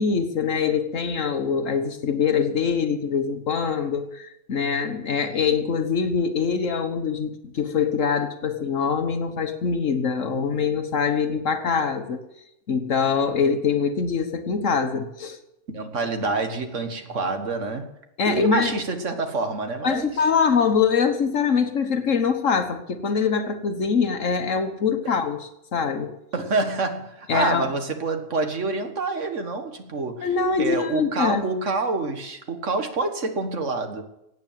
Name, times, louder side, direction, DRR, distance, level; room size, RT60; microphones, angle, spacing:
voice 1, 0.0-12.2 12.7-15.4 18.2-18.7 19.8-26.2 27.3-27.6 30.2-31.4, left 6 dB, 75° left, 7 dB, 1.5 m, -24 dB
voice 2, 15.7-17.9 18.3-20.2 26.3-30.3 30.6-34.0, right 3 dB, 70° right, 6 dB, 1.9 m, -27 dB
17.5 x 8.6 x 7.4 m, 0.85 s
omnidirectional pair, 1.3 m